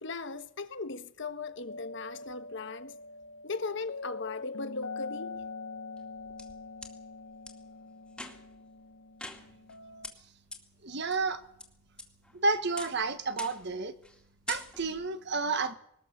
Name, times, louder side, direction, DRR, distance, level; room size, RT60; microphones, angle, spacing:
voice 1, 0.0-3.0 3.4-5.4, left 3 dB, 60° left, 1.3 m, -38 dB
sound 1, 1.7-10.1, left 3 dB, 85° left, 0.9 m, -44 dB
sound 2, 6.0-6.9 7.5-7.6 8.1-8.6 9.2-9.8 10.0-10.1 10.5-10.6 11.1-11.6 12.0-12.4 12.8-13.0 13.4-13.7 14.0-14.2 14.5-15.0, left 2 dB, 5° left, 2.3 m, -43 dB
voice 2, 10.8-11.4 12.3-13.9 14.5-15.7, right 3 dB, 55° right, 1.5 m, -30 dB
23.0 x 19.5 x 6.8 m
head